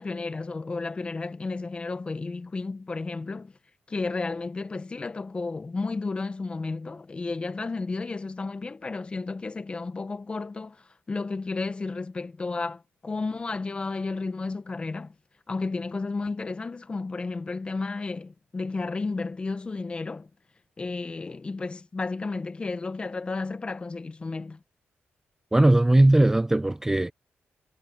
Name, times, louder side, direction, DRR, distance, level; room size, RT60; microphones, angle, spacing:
voice 1, 0.0-3.5 3.9-15.1 15.5-20.3 20.8-24.6, left 3 dB, 25° left, 0.8 m, -32 dB
voice 2, 25.5-27.1, right 1 dB, 10° right, 0.4 m, -19 dB
cardioid pair, 115°, 4 cm